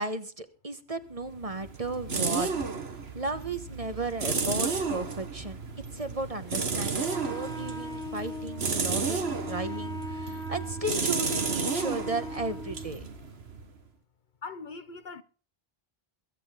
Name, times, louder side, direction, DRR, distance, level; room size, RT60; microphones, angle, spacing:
voice 1, 0.0-2.5 3.1-5.6 5.9-13.0, right 2 dB, 35° right, 1.3 m, -35 dB
sound 1, 1.1-13.8, right 4 dB, 80° right, 1.9 m, -32 dB
Wind instrument woodwind instrument, 7.1-12.9, left 2 dB, 5° left, 1.5 m, -40 dB
voice 2, 14.4-15.2, left 4 dB, 50° left, 0.9 m, -40 dB
22.5 x 8.7 x 3.7 m
omnidirectional pair, 1.0 m